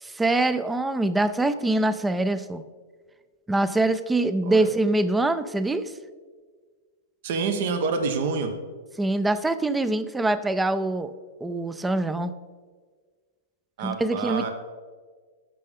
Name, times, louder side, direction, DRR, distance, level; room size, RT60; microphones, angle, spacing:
voice 1, 0.0-2.6 3.5-5.9 9.0-11.1 11.4-12.3 13.8-14.5, right 2 dB, 10° right, 12 dB, 0.4 m, -24 dB
voice 2, 7.2-8.5 13.8-14.5, right 4 dB, 65° right, 6 dB, 1.2 m, -27 dB
13.5 x 5.5 x 3.7 m, 1.5 s
hypercardioid pair, 135°, 0 cm